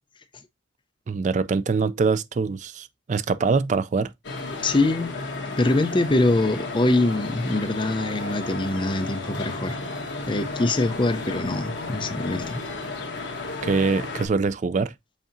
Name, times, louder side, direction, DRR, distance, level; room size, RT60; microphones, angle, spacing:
voice 1, 1.1-4.1 13.6-14.9, right 4 dB, 40° right, 0.3 m, -24 dB
sound 1, 4.2-14.3, left 3 dB, 65° left, 1.2 m, -33 dB
voice 2, 4.6-5.1 5.6-9.8 10.3-12.6, left 2 dB, 25° left, 0.5 m, -23 dB
7.2 x 2.8 x 2.5 m
head